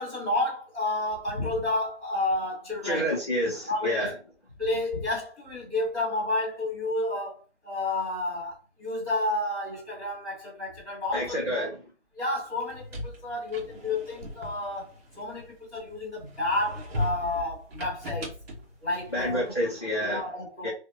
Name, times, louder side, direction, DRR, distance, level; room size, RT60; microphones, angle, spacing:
voice 1, 0.0-3.1 3.7-4.1 4.6-11.7 12.1-18.4 18.8-19.5 20.0-20.7, left 2 dB, ahead, 0.8 m, -31 dB
voice 2, 2.8-4.1 11.1-11.8 19.1-20.2 20.6-20.7, equal, 25° left, 0.5 m, -28 dB
sound 1, 12.5-15.8 16.3-19.6, left 1 dB, 60° right, 1.1 m, -38 dB
2.7 x 2.1 x 2.5 m
hypercardioid pair, 165°, 35 cm